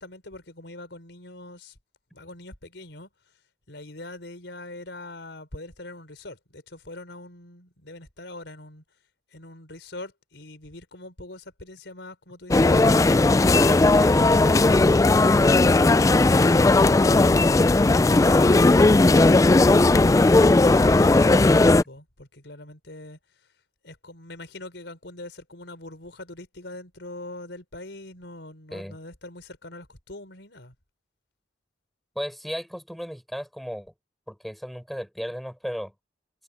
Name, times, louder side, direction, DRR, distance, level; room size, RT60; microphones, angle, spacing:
voice 1, 0.0-1.8 2.1-3.1 3.7-8.8 9.3-12.9 17.9-23.2 23.8-30.7, left 2 dB, 75° left, 4.5 m, -42 dB
sound 1, 12.5-21.8, left 2 dB, 20° left, 0.3 m, -17 dB
voice 2, 32.2-33.9 34.3-35.9, equal, ahead, 5.5 m, -35 dB
head